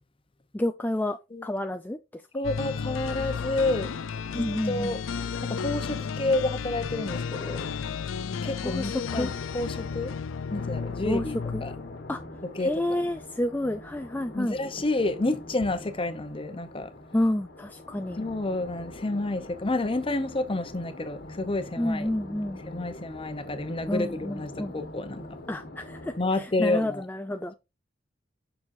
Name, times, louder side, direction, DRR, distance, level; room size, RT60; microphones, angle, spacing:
voice 1, 0.5-2.2 4.3-5.0 8.6-9.3 11.0-11.2 11.5-11.6 12.1-12.2 12.6-14.6 17.1-18.2 21.8-22.6 23.9-24.7 25.5-27.5, left 1 dB, 10° left, 0.3 m, -29 dB
voice 2, 2.3-3.9 4.3-5.0 5.4-7.7 8.4-10.1 10.5-11.7 12.5-13.1 14.3-16.9 18.2-22.1 22.7-25.2 26.2-27.0, left 2 dB, 25° left, 0.8 m, -30 dB
sound 1, 2.4-12.3, left 6 dB, 90° left, 0.5 m, -33 dB
sound 2, 10.5-26.2, left 1 dB, 55° left, 1.3 m, -43 dB
7.3 x 6.1 x 2.6 m
head